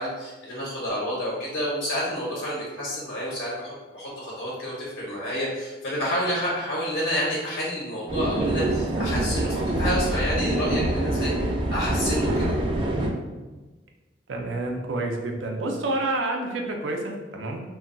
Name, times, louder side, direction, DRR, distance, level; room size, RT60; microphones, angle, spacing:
voice 1, 0.0-11.3 11.7-12.5, equal, 90° left, -6 dB, 0.9 m, -29 dB
sound 1, 8.1-13.1, right 1 dB, 30° right, 0.3 m, -25 dB
voice 2, 14.3-17.6, right 2 dB, 85° right, 2 dB, 0.5 m, -28 dB
2.2 x 2.2 x 3.8 m, 1.2 s
head